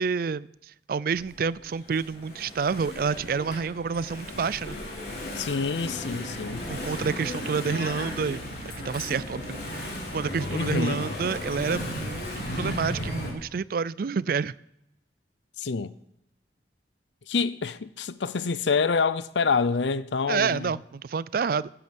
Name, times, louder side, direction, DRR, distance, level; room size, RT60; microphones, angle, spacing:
voice 1, 0.0-4.8 6.7-14.5 20.3-21.7, right 5 dB, 55° right, 0.4 m, -29 dB
Engine / Mechanisms, 1.1-13.3, left 1 dB, 65° left, 3.9 m, -35 dB
voice 2, 5.4-6.6 10.5-11.0 15.6-15.9 17.3-20.7, left 5 dB, 85° left, 0.6 m, -27 dB
12.0 x 8.5 x 8.0 m
head